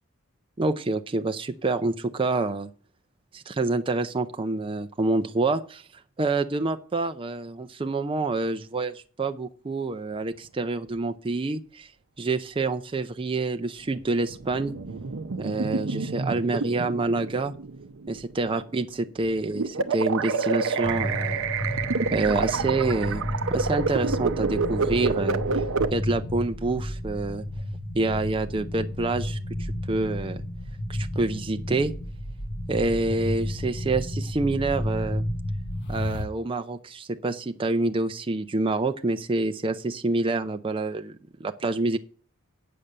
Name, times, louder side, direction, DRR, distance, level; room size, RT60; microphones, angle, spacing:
voice 1, 0.6-2.7 3.3-5.9 6.2-11.9 12.2-14.7 15.4-17.5 18.1-21.4 22.1-23.2 23.5-25.6 25.9-27.4 28.0-30.4 30.9-31.9 32.7-35.2 35.9-42.0, right 3 dB, 25° right, 7 dB, 0.5 m, -27 dB
sound 1, 13.9-18.7 19.2-25.9, right 4 dB, 65° right, 0.7 m, -28 dB
sound 2, 20.8-36.3, left 1 dB, 55° left, 1.1 m, -32 dB
8.7 x 6.6 x 6.6 m, 0.43 s
head